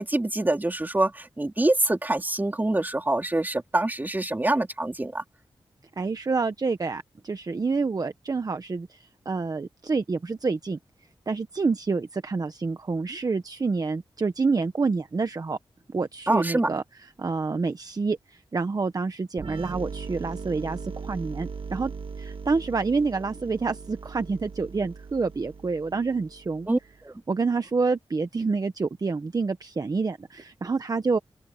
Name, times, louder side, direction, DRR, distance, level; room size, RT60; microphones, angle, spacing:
voice 1, 0.0-5.2 16.3-16.7 26.7-26.8 27.0-27.1, right 2 dB, 20° right, 2.6 m, -25 dB
voice 2, 6.0-10.8 11.3-15.6 15.9-16.8 17.2-21.9 22.2-26.7 27.3-31.2, right 4 dB, 40° right, 1.0 m, -28 dB
sound 1, 19.4-27.0, right 5 dB, 65° right, 1.8 m, -39 dB
open air
wide cardioid pair, 105°, 10 cm